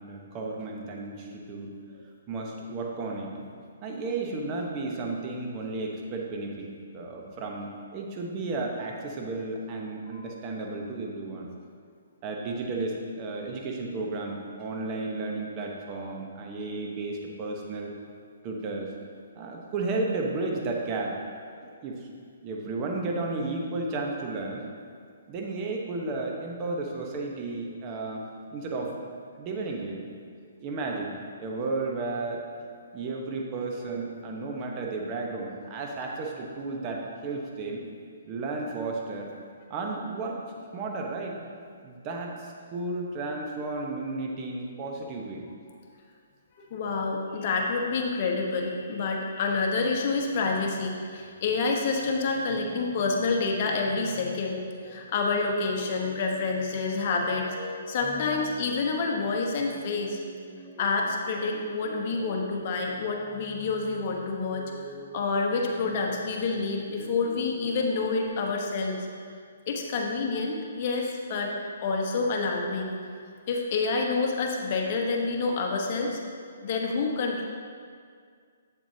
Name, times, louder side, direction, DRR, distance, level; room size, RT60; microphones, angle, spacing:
voice 1, 0.0-1.7 2.3-3.4 3.8-6.7 6.9-11.5 12.2-17.9 18.4-18.9 19.3-21.2 21.6-22.1 22.4-24.6 25.3-28.2 28.5-29.0 29.3-30.0 30.6-31.1 31.4-32.5 32.9-37.8 38.3-39.3 39.7-40.4 40.7-41.4 41.8-45.5, right 3 dB, 30° right, 0 dB, 1.1 m, -33 dB
voice 2, 46.7-60.2 60.8-64.6 65.1-69.1 69.7-71.5 71.8-76.2 76.6-77.4, left 3 dB, 45° left, 0 dB, 1.1 m, -28 dB
sound 1, 52.5-68.3, left 2 dB, ahead, 0.7 m, -46 dB
8.0 x 7.3 x 2.8 m, 2.1 s
hypercardioid pair, 140°, 0 cm